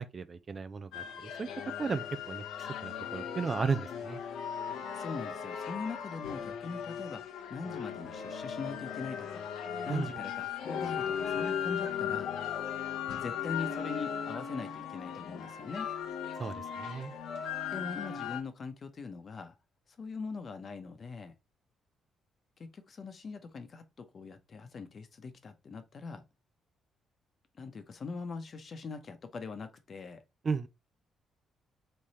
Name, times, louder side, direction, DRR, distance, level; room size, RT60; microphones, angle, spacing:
voice 1, 0.0-1.5 1.8-2.4 2.8-4.2 9.9-10.2 16.4-17.1 30.4-30.7, right 5 dB, 40° right, 0.5 m, -34 dB
sound 1, 0.9-18.4, left 8 dB, 85° left, 0.9 m, -37 dB
voice 2, 4.9-7.2 7.5-9.5 9.9-12.3 13.2-15.9 17.7-19.5 20.0-21.3 22.6-26.2 27.6-30.2, left 4 dB, 45° left, 0.9 m, -41 dB
3.6 x 3.3 x 4.2 m
cardioid pair, 90°, 0 cm